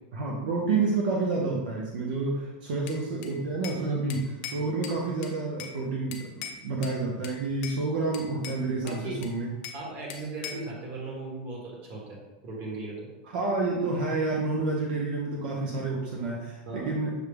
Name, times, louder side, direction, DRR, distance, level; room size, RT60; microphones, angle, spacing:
voice 1, 0.1-6.3 6.6-9.5 13.3-17.1, right 3 dB, 70° right, -2 dB, 0.8 m, -29 dB
Bell / Glass, 2.9-3.8 4.1-5.8 6.1-7.0 7.2-7.8 8.1-9.8 10.1-10.7, left 7 dB, 40° left, 0.5 m, -41 dB
voice 2, 8.8-9.2 9.7-12.2 12.4-13.1 16.7-16.9, right 2 dB, 35° right, -2 dB, 1.3 m, -37 dB
6.4 x 2.2 x 3.4 m, 1.1 s
supercardioid pair, 160°, 5 cm